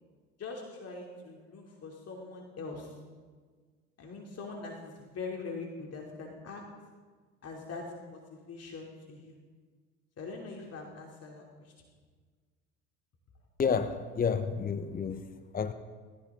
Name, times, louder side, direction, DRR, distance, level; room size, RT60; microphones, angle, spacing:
voice 1, 0.4-3.0 4.0-6.6 7.4-9.4 10.2-11.7, left 4 dB, 40° left, 0 dB, 3.0 m, -42 dB
voice 2, 13.6-15.2 15.5-15.7, left 6 dB, 25° left, 11 dB, 1.0 m, -30 dB
19.0 x 16.0 x 3.8 m, 1.5 s
hypercardioid pair, 70°, 36 cm